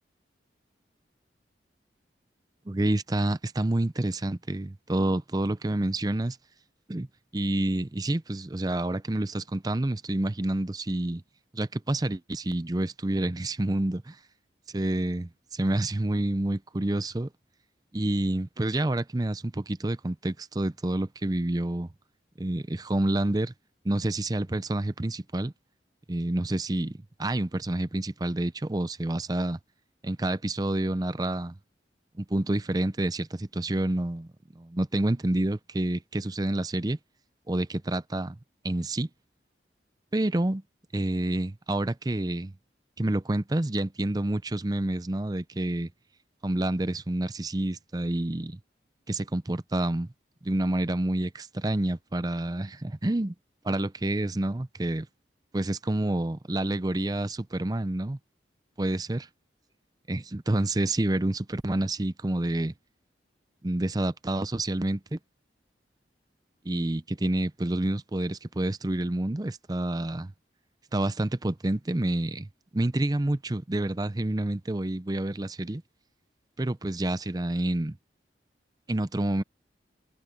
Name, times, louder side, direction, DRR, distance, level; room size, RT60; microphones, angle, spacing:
voice 1, 2.7-6.4 6.9-7.1 7.3-11.2 11.5-14.2 14.7-17.3 17.9-21.9 22.4-23.5 23.8-25.5 26.1-29.6 30.0-31.6 32.2-34.3 34.6-37.0 37.5-38.4 38.6-39.1 40.1-40.6 40.9-42.5 43.0-45.9 46.4-48.6 49.1-50.1 50.4-53.3 53.6-55.1 55.5-58.2 58.8-59.2 60.1-62.7 63.6-65.2 66.6-70.3 70.9-72.5 72.7-75.8 76.6-78.0 78.9-79.4, right 1 dB, 20° right, 0.5 m, -28 dB
head